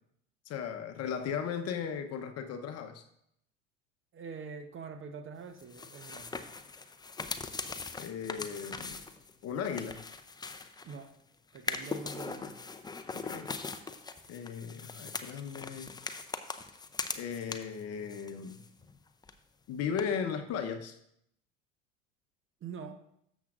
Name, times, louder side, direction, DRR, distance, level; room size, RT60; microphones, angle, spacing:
voice 1, 0.5-3.0 8.0-9.0 9.4-10.0 13.1-13.5 14.3-16.0 17.2-18.6 19.7-21.0, left 7 dB, 40° left, 7 dB, 1.0 m, -36 dB
voice 2, 4.1-6.5 10.8-11.1 11.5-12.6 22.6-23.0, right 5 dB, 35° right, 7 dB, 1.1 m, -44 dB
sound 1, 5.6-11.1 11.5-17.8 18.1-19.0 19.2-19.3 20.0-20.1, left 4 dB, 10° left, 0.6 m, -41 dB
13.0 x 7.3 x 2.5 m, 0.73 s
hypercardioid pair, 80°, 38 cm